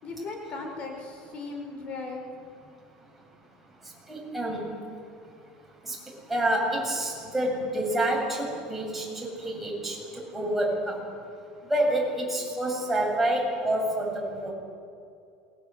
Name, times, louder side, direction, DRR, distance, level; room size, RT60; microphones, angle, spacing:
voice 1, 0.0-2.3, left 3 dB, 40° left, 3 dB, 4.4 m, -37 dB
voice 2, 4.1-4.7 5.8-6.0 6.3-11.0 11.7-14.5, right 1 dB, 5° right, -2 dB, 7.8 m, -28 dB
27.5 x 23.0 x 7.9 m, 2.5 s
cardioid pair, 140°, 3 cm